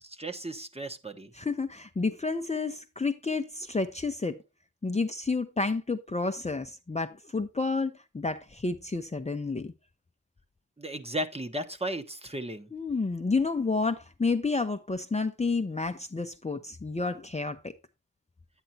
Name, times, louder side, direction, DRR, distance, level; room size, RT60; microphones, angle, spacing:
voice 1, 0.0-1.3 10.8-12.7, right 1 dB, 20° right, 1.1 m, -35 dB
voice 2, 1.3-4.4 4.8-9.7 12.7-17.7, left 3 dB, 20° left, 0.6 m, -30 dB
9.9 x 9.1 x 2.8 m
wide cardioid pair, 100°, 33 cm